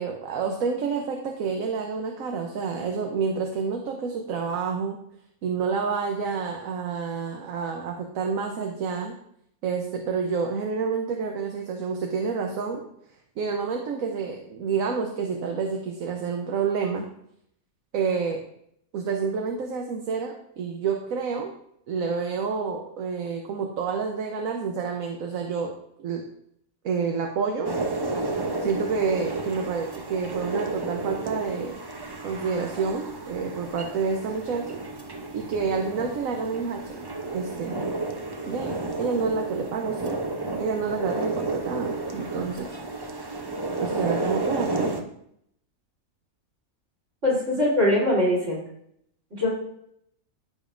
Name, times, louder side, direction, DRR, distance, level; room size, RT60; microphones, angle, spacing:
voice 1, 0.0-5.0 5.4-9.2 9.6-12.8 13.4-17.1 17.9-18.4 18.9-21.5 21.9-25.7 26.0-26.2 26.8-27.7 28.6-31.8 32.2-34.8 35.3-37.7 38.4-40.2 40.6-42.7 43.8-45.0, right 5 dB, 70° right, 2 dB, 1.2 m, -28 dB
sound 1, 27.6-45.0, right 3 dB, 30° right, 0.4 m, -32 dB
voice 2, 47.2-48.6 49.3-49.5, left 1 dB, 55° right, -5 dB, 3.8 m, -22 dB
14.5 x 5.1 x 2.5 m, 0.72 s
omnidirectional pair, 1.5 m